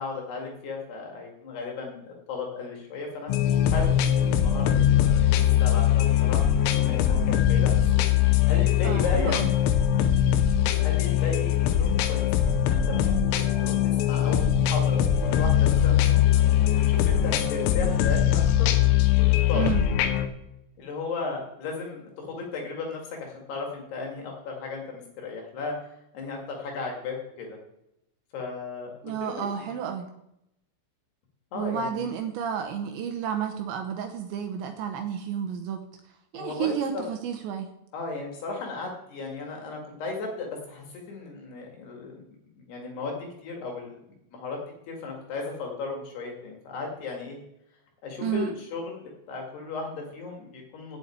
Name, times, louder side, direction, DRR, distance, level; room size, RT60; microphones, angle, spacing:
voice 1, 0.0-3.3 3.7-9.5 10.8-18.7 19.3-19.7 20.8-25.8 26.1-27.6 28.3-29.7 31.5-32.2 36.3-37.1 37.9-42.2 42.6-44.0 44.3-47.4 48.0-51.0, left 4 dB, 60° left, 1 dB, 3.7 m, -35 dB
sound 1, 3.3-20.3, left 10 dB, 90° left, 3.5 m, -22 dB
voice 2, 8.8-9.5 19.5-19.8 29.0-30.0 31.6-35.8 36.3-37.7 48.2-48.5, right 8 dB, 75° right, 5 dB, 2.9 m, -31 dB
8.2 x 7.8 x 8.7 m, 0.82 s
omnidirectional pair, 5.8 m